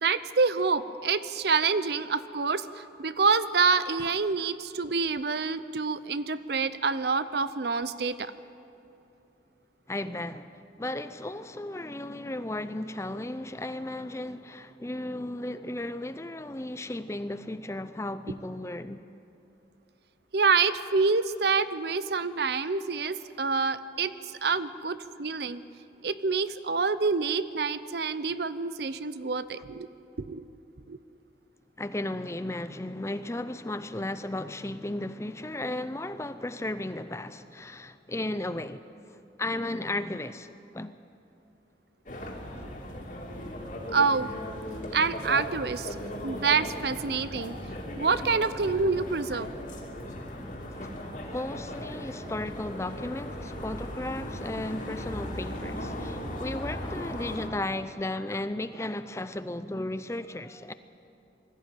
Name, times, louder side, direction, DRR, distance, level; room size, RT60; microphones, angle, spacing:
voice 1, 0.0-8.3 20.3-25.6 26.0-29.9 30.2-30.4 30.9-31.0 43.9-44.3 44.9-46.0 46.2-47.6 48.0-49.5, right 4 dB, 60° right, 0.6 m, -27 dB
voice 2, 9.9-19.0 31.8-41.0 49.3-49.4 50.7-50.9 51.2-60.7, left 1 dB, 15° left, 0.5 m, -35 dB
sound 1, 42.1-57.5, equal, 45° left, 2.7 m, -37 dB
21.0 x 14.0 x 9.1 m
head